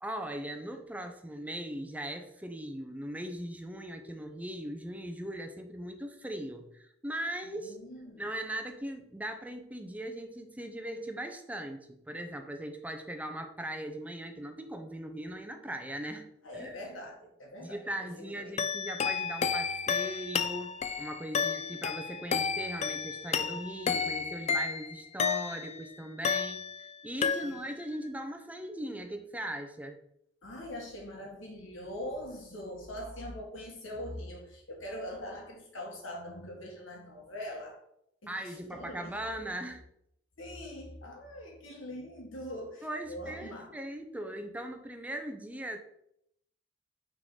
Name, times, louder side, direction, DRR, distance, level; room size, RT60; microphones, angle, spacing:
voice 1, 0.0-7.8 8.2-16.3 16.5-16.8 17.6-26.7 27.0-30.0 38.3-39.8 42.8-45.8, right 1 dB, 10° right, 0.6 m, -39 dB
voice 2, 7.4-8.2 16.4-17.8 18.2-18.5 21.4-21.6 27.3-27.6 30.4-37.8 38.2-39.4 40.4-43.8, left 1 dB, 85° left, 1.7 m, -42 dB
sound 1, 18.6-25.8 26.2-26.9 27.2-27.8, left 6 dB, 35° left, 0.3 m, -32 dB
6.2 x 3.8 x 4.8 m
head